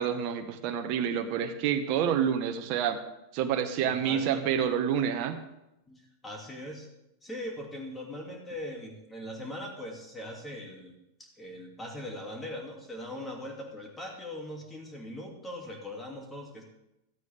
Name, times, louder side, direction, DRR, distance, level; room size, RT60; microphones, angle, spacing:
voice 1, 0.0-3.0 3.3-5.4, right 8 dB, 40° right, 7 dB, 1.4 m, -28 dB
voice 2, 3.8-4.4 5.9-6.9 7.2-10.9 11.2-16.6, left 1 dB, 10° left, 1 dB, 2.9 m, -40 dB
16.0 x 13.5 x 3.7 m, 0.89 s
figure-of-eight pair, 90°, 0 cm